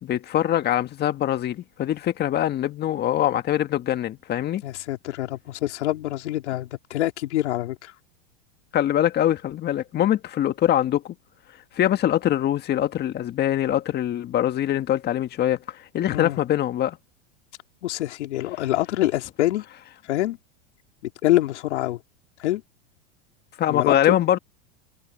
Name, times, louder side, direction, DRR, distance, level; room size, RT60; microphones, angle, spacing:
voice 1, 0.0-4.6 8.7-11.1 11.7-17.0 23.6-24.4, left 12 dB, 30° left, 1.7 m, -23 dB
voice 2, 4.6-7.9 16.1-16.4 17.8-19.6 20.1-20.4 21.2-22.0 22.4-22.6 23.7-24.1, left 15 dB, 75° left, 3.4 m, -25 dB
supercardioid pair, 130°, 35 cm